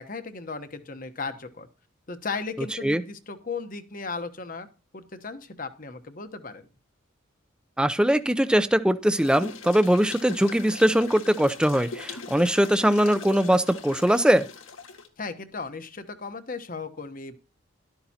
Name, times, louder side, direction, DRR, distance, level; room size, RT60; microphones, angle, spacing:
voice 1, 0.0-1.7 2.1-4.7 4.9-6.7 15.2-17.4, left 4 dB, 40° left, 9 dB, 1.1 m, -36 dB
voice 2, 7.8-14.5, equal, 5° right, 11 dB, 0.6 m, -21 dB
sound 1, 9.2-15.1, left 4 dB, 80° left, 1.8 m, -41 dB
13.0 x 12.0 x 2.9 m, 0.33 s
head